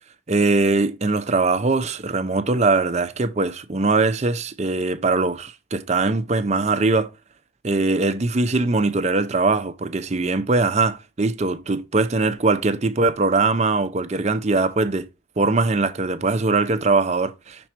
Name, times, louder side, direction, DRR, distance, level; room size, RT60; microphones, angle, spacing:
voice 1, 0.3-7.1 7.6-15.1 15.4-17.7, right 3 dB, 35° right, 0.5 m, -21 dB
6.0 x 4.4 x 4.3 m
head